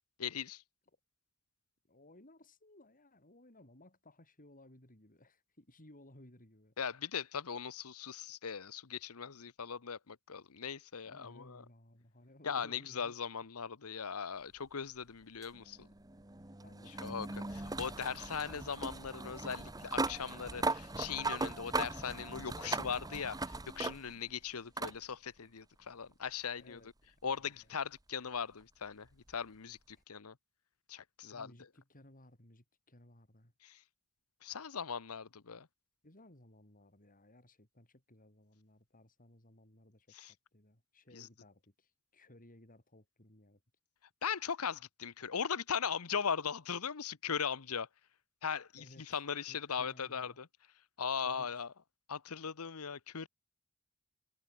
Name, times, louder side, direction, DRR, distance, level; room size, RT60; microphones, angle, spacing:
voice 1, 0.2-0.6 6.8-11.6 12.4-15.9 16.9-26.8 27.2-30.3 30.9-31.5 33.6-33.8 34.4-35.7 40.1-40.3 41.1-41.3 44.2-47.9 48.4-50.5 51.0-51.7 52.1-53.3, left 6 dB, 75° left, 1.0 m, -39 dB
voice 2, 1.9-6.7 11.0-13.2 16.6-18.6 26.6-27.1 27.4-27.7 31.3-33.5 36.0-43.6 48.8-50.4 51.2-51.7, left 1 dB, 40° left, 5.5 m, -60 dB
sound 1, 15.4-24.3 24.8-25.0 26.3-26.4 29.3-29.4, right 3 dB, 15° right, 1.3 m, -39 dB
head